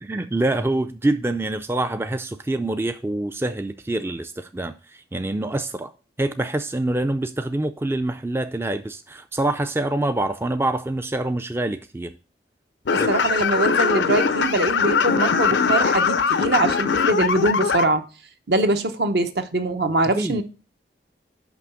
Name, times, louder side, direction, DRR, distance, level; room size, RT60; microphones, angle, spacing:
voice 1, 0.0-5.9 6.2-12.1 13.0-13.1 20.1-20.4, right 2 dB, 15° right, 0.3 m, -25 dB
sound 1, 12.9-17.8, left 5 dB, 85° left, 0.6 m, -21 dB
voice 2, 12.9-18.0 18.5-20.4, right 2 dB, 65° right, 0.9 m, -22 dB
6.0 x 5.7 x 6.9 m
head